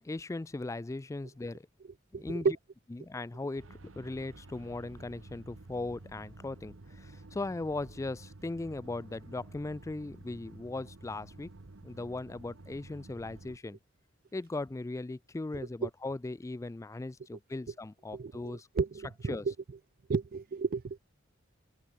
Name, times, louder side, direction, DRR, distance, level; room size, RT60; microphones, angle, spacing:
voice 1, 0.0-1.6 2.1-2.5 2.9-11.5 11.8-13.8 14.3-18.7 19.3-19.4, left 2 dB, 15° left, 0.3 m, -38 dB
voice 2, 2.1-2.5 15.8-15.9 18.1-19.5 20.1-21.0, right 4 dB, 50° right, 0.4 m, -32 dB
sound 1, 3.6-13.6, right 2 dB, 80° right, 1.1 m, -51 dB
open air
head